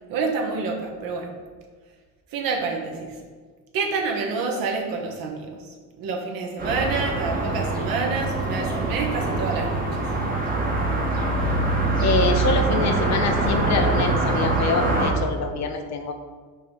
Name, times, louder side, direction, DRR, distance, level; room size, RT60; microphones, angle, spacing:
voice 1, 0.1-1.3 2.3-3.2 3.7-9.8, right 4 dB, 55° right, 1 dB, 1.2 m, -28 dB
sound 1, 6.6-15.1, right 3 dB, 20° right, 1.2 m, -24 dB
voice 2, 12.0-16.1, left 5 dB, 40° left, 5 dB, 0.6 m, -25 dB
5.8 x 3.2 x 5.6 m, 1.5 s
cardioid pair, 120°, 42 cm